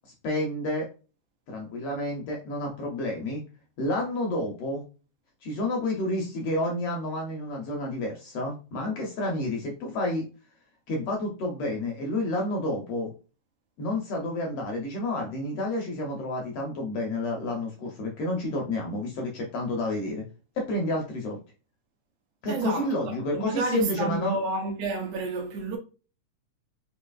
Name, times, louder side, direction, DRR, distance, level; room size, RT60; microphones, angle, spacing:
voice 1, 0.2-0.9 1.5-3.4 3.8-4.8 5.4-10.2 10.9-13.1 13.8-20.2 20.6-21.4 22.4-24.4, left 1 dB, 70° left, 1.5 m, -30 dB
voice 2, 22.5-22.9 23.3-25.8, right 3 dB, 75° right, 1.9 m, -30 dB
4.9 x 2.8 x 2.3 m
omnidirectional pair, 3.3 m